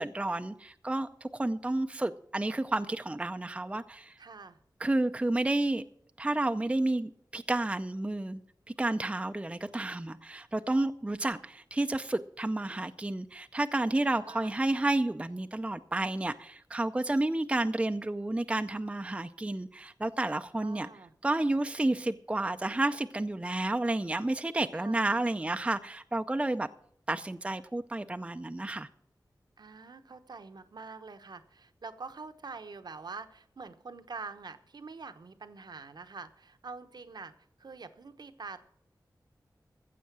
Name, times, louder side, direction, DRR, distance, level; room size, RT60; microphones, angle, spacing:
voice 1, 0.0-4.1 4.8-5.8 6.2-8.4 8.8-20.9 21.2-26.7 27.1-28.9, right 2 dB, 15° right, 0.5 m, -31 dB
voice 2, 4.2-4.6 14.1-14.6 20.6-21.1 24.7-25.2 29.6-37.3 37.6-38.6, right 4 dB, 70° right, 1.0 m, -45 dB
15.0 x 7.6 x 6.0 m
wide cardioid pair, 90°, 7 cm